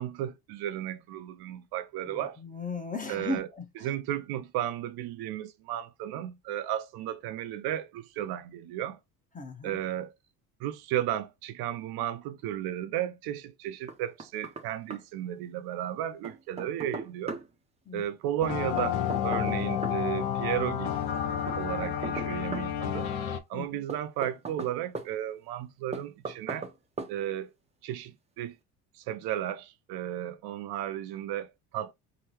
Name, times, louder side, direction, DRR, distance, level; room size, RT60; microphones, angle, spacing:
voice 1, 0.0-2.4 3.1-3.5 3.8-9.0 9.6-10.1 10.6-17.4 17.9-20.9 21.6-23.1 23.5-26.7 27.1-27.5 27.8-28.6 28.9-31.9, right 11 dB, 60° right, 0.5 m, -34 dB
voice 2, 2.1-3.9 9.3-9.8 17.9-18.0 23.5-23.8, left 2 dB, 20° left, 0.9 m, -37 dB
Knock, 13.9-14.7 14.9-15.0 16.2-17.5 18.8-20.0 21.5-22.7 23.9-25.1 25.9-26.7 27.0-27.1, right 4 dB, 15° right, 0.5 m, -38 dB
sound 1, 18.4-23.4, left 9 dB, 60° left, 0.7 m, -30 dB
3.7 x 2.1 x 2.8 m
supercardioid pair, 80°, 44 cm